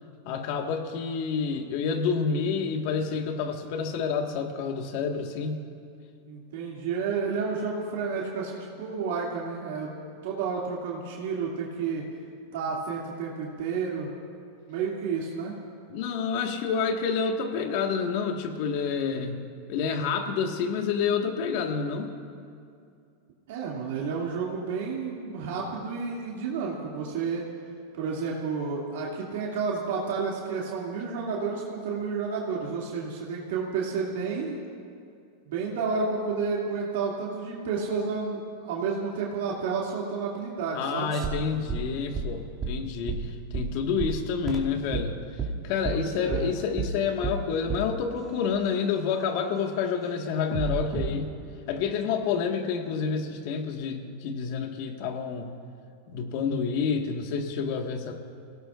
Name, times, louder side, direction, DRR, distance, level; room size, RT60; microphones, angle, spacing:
voice 1, 0.2-5.6 15.9-19.4 19.7-22.1 40.7-45.2 45.6-51.3 51.7-55.5 56.1-58.2, left 6 dB, 60° left, 4 dB, 1.7 m, -28 dB
voice 2, 6.3-9.9 10.2-12.1 12.5-14.1 14.7-15.5 23.5-27.4 27.9-34.6 35.4-41.1 45.9-46.5, right 5 dB, 75° right, -4 dB, 2.6 m, -31 dB
sound 1, 41.1-45.1 45.4-45.5 45.8-46.0 46.3-46.5 46.8-46.9 47.2-47.4 47.7-47.9 50.5-51.1, right 4 dB, 30° right, 2.5 m, -31 dB
28.0 x 17.5 x 2.6 m, 2.4 s
supercardioid pair, 125°, 0 cm